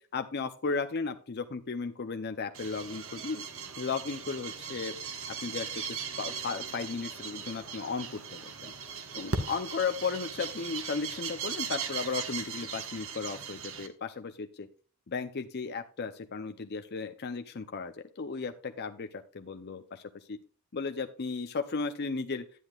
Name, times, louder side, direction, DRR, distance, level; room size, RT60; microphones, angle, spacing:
voice 1, 0.1-3.4 3.8-5.0 5.4-8.7 9.1-14.7 15.1-20.4 20.7-22.4, left 4 dB, 50° left, 7 dB, 0.6 m, -35 dB
pajaros tarde, 2.5-13.9, right 6 dB, 65° right, 1.4 m, -38 dB
11.0 x 9.9 x 2.4 m, 0.41 s
head